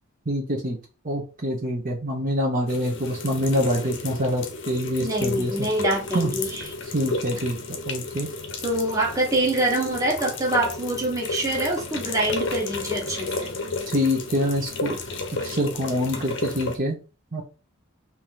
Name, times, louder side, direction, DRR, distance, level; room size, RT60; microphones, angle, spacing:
voice 1, 0.3-0.8 1.0-5.5 6.1-6.3 6.9-8.3 13.9-15.0 15.4-17.0 17.3-17.4, equal, 40° right, -2 dB, 1.0 m, -25 dB
sound 1, 2.7-16.8, left 3 dB, 60° left, 0.7 m, -32 dB
voice 2, 5.0-6.7 8.6-13.6, right 1 dB, 15° right, -2 dB, 1.3 m, -25 dB
3.7 x 2.9 x 4.7 m, 0.33 s
head